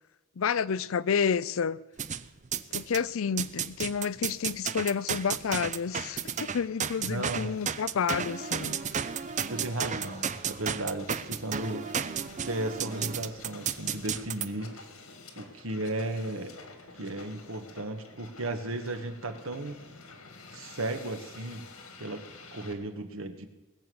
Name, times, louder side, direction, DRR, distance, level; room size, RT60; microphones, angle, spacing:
voice 1, 0.4-1.8 2.7-8.8, left 6 dB, 70° left, 0.5 m, -30 dB
sound 1, 2.0-3.0 3.4-14.5, right 7 dB, 35° right, 0.5 m, -33 dB
Hiss, 4.8-22.7, left 3 dB, 85° left, 2.1 m, -50 dB
voice 2, 7.0-7.5 9.5-11.8 12.4-14.8 15.4-16.5 17.0-19.8 20.5-21.7 22.0-22.2 22.5-23.5, right 2 dB, 75° right, 1.5 m, -35 dB
20.0 x 7.1 x 7.9 m
head